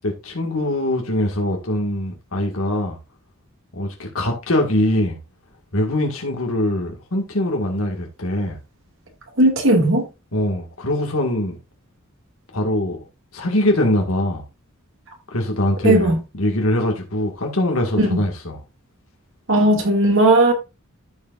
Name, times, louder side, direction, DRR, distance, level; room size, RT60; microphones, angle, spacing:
voice 1, 0.0-3.0 3.7-5.2 5.7-8.6 10.3-11.6 12.5-13.1 13.3-14.4 15.3-18.6, left 1 dB, 75° left, 2.0 m, -22 dB
voice 2, 9.4-10.0 15.8-16.2 18.0-18.2 19.5-20.5, right 1 dB, 65° right, 2.4 m, -16 dB
14.5 x 5.0 x 2.6 m
head